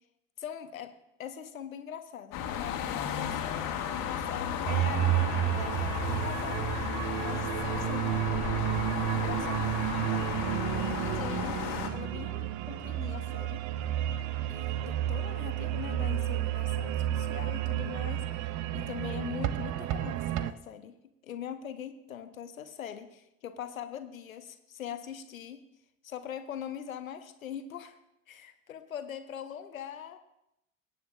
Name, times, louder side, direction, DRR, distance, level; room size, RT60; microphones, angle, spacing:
voice 1, 0.4-0.9 1.2-8.2 9.1-9.6 10.1-10.4 11.0-13.6 14.5-21.0 21.2-25.6 26.0-28.0 28.3-30.2, left 9 dB, 80° left, 10 dB, 0.8 m, -42 dB
sound 1, 2.3-11.9, left 8 dB, 50° left, 1.5 m, -34 dB
sound 2, 4.7-20.5, right 13 dB, 45° right, 0.6 m, -31 dB
21.5 x 9.3 x 2.4 m, 0.87 s
figure-of-eight pair, 60°, 40 cm